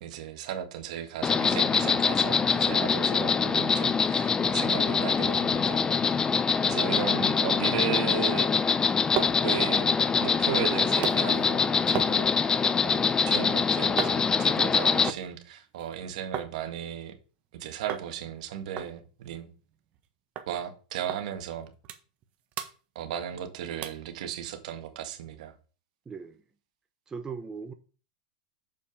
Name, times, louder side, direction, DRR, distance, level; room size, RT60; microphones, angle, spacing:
voice 1, 0.0-6.3 6.7-8.5 9.4-9.9 10.2-17.1 17.6-19.5 20.5-21.7 23.0-25.5, right 9 dB, 65° right, 1.8 m, -35 dB
Insect, 1.2-15.1, left 5 dB, 15° left, 0.5 m, -24 dB
sound 1, 8.6-16.5 16.8-17.5 17.9-18.1 18.4-18.5 18.8-20.1 20.4-20.5 21.1-21.2 21.6-22.3 22.5-23.4 23.8-24.1 24.6-24.7, right 10 dB, 35° right, 1.3 m, -38 dB
voice 2, 26.1-26.4 27.1-27.7, right 5 dB, 15° right, 0.8 m, -38 dB
7.1 x 5.3 x 5.2 m
hypercardioid pair, 125°, 4 cm